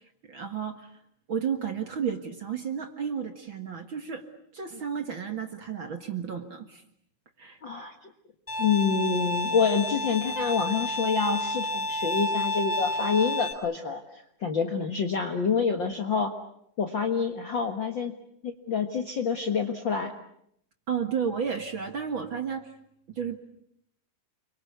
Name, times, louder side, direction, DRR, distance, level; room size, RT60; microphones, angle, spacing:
voice 1, 0.3-0.9 1.3-4.2 4.5-6.8 7.4-7.6 20.9-22.7 23.2-23.4, right 7 dB, 45° right, 6 dB, 2.0 m, -32 dB
voice 2, 7.6-8.1 8.6-16.3 16.8-18.1 18.4-20.1, left 6 dB, 45° left, 4 dB, 1.8 m, -27 dB
Bowed string instrument, 8.5-13.5, left 1 dB, 10° left, 3.0 m, -30 dB
30.0 x 23.5 x 8.1 m, 0.74 s
omnidirectional pair, 3.7 m